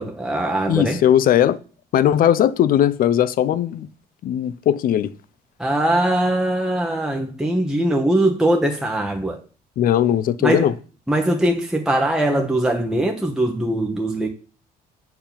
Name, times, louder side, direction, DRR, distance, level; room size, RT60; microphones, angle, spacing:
voice 1, 0.0-1.0 5.6-9.4 10.4-10.7 11.1-14.3, right 1 dB, 5° right, 1.0 m, -21 dB
voice 2, 0.7-1.6 1.9-3.9 4.2-5.1 9.8-10.7, left 10 dB, 55° left, 0.7 m, -18 dB
7.6 x 4.7 x 6.9 m
cardioid pair, 110°, 17 cm